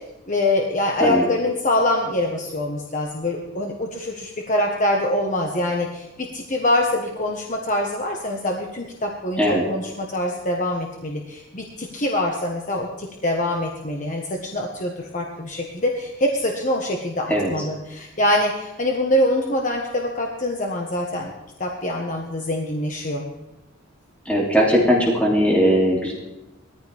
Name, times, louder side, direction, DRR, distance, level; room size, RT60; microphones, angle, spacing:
voice 1, 0.3-21.3 21.6-23.2, left 1 dB, 40° left, 0 dB, 1.4 m, -24 dB
voice 2, 24.3-26.1, equal, 5° left, -4 dB, 3.0 m, -18 dB
20.0 x 14.5 x 3.6 m, 0.99 s
head